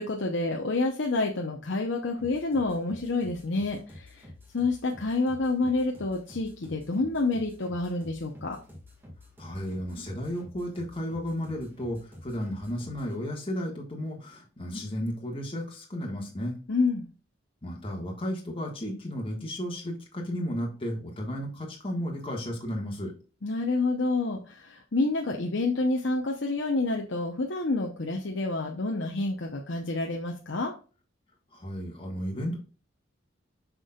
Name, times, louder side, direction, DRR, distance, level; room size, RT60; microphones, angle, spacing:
voice 1, 0.0-4.3 4.5-8.6 16.7-17.1 23.4-30.7, left 3 dB, 65° left, 1 dB, 0.8 m, -28 dB
sound 1, 2.2-13.2, left 1 dB, 10° right, 1.8 m, -49 dB
voice 2, 9.4-16.6 17.6-23.1 31.5-32.6, equal, 30° left, -1 dB, 1.6 m, -33 dB
6.4 x 6.1 x 2.4 m, 0.35 s
head